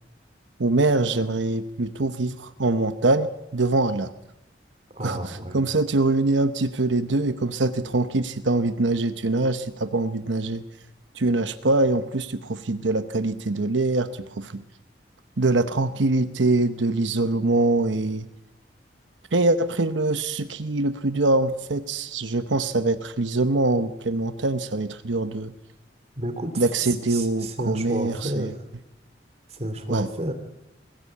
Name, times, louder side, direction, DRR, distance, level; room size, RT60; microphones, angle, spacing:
voice 1, 0.6-4.1 5.0-10.6 11.1-14.6 15.4-18.3 19.3-25.5 26.6-28.5 29.9-30.1, right 2 dB, 90° right, 11 dB, 1.0 m, -24 dB
voice 2, 4.9-5.6 26.2-28.5 29.5-30.3, right 1 dB, 35° right, 8 dB, 2.7 m, -31 dB
21.0 x 17.5 x 8.4 m, 0.89 s
head